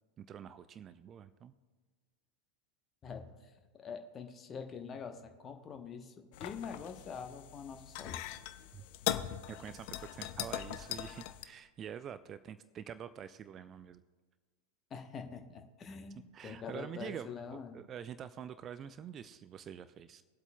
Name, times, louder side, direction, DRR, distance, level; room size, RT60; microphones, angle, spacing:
voice 1, 0.2-1.5 8.7-8.8 9.5-14.0 16.3-20.2, right 8 dB, 25° right, 13 dB, 0.3 m, -46 dB
voice 2, 3.0-3.5 3.8-6.1 6.4-8.2 14.9-17.8, left 6 dB, 25° left, 6 dB, 0.9 m, -45 dB
sound 1, 6.3-11.4, left 12 dB, 45° left, 0.5 m, -40 dB
21.0 x 8.0 x 2.3 m, 1.4 s
figure-of-eight pair, 90°, 0 cm